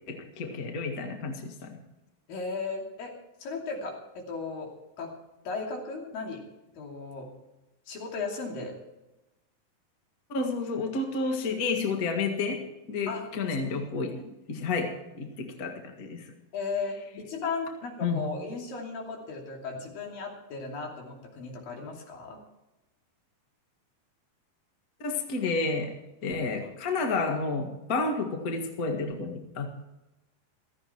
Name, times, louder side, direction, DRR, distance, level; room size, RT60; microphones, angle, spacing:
voice 1, 0.1-1.8 10.3-16.3 18.0-18.2 25.0-26.0 26.2-29.7, left 3 dB, 40° left, 4 dB, 1.4 m, -31 dB
voice 2, 2.3-3.1 3.4-4.7 5.0-5.1 5.4-6.4 6.7-7.3 7.9-8.7 13.1-13.3 16.5-22.4 26.6-26.7, left 4 dB, 75° left, 0 dB, 4.5 m, -36 dB
16.0 x 14.0 x 4.5 m, 0.98 s
omnidirectional pair, 4.1 m